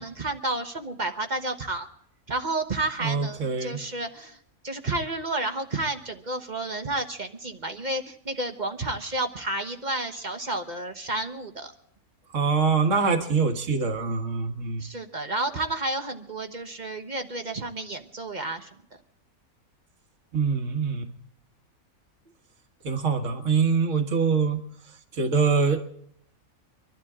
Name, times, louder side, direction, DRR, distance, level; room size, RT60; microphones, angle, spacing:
voice 1, 0.0-1.9 2.3-4.4 4.6-11.7 14.8-18.7, right 2 dB, 35° right, 6 dB, 1.2 m, -31 dB
voice 2, 3.0-3.8 12.3-14.8 20.3-21.1 22.8-24.6 25.2-25.8, right 5 dB, 60° right, 6 dB, 1.8 m, -24 dB
25.5 x 12.5 x 3.7 m, 0.70 s
omnidirectional pair, 1.5 m